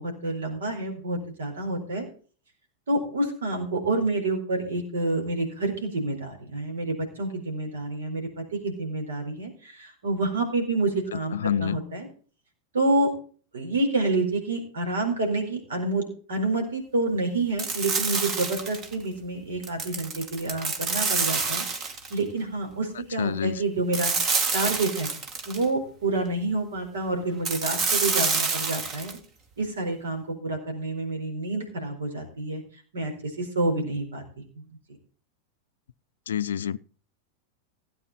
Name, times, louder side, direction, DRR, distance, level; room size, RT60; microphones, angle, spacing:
voice 1, 0.0-2.1 2.9-12.1 12.7-13.1 13.5-21.7 22.1-24.1 24.5-25.1 25.5-29.2 29.6-32.6 32.9-34.8, right 2 dB, 65° right, 4.3 m, -28 dB
voice 2, 11.1-11.8 23.2-23.6 36.3-36.8, left 9 dB, 65° left, 0.5 m, -28 dB
sound 1, 17.6-18.9 19.6-22.2 23.9-25.6 27.4-29.2, right 4 dB, 30° right, 1.9 m, -27 dB
16.5 x 8.9 x 3.9 m
figure-of-eight pair, 90°, 0 cm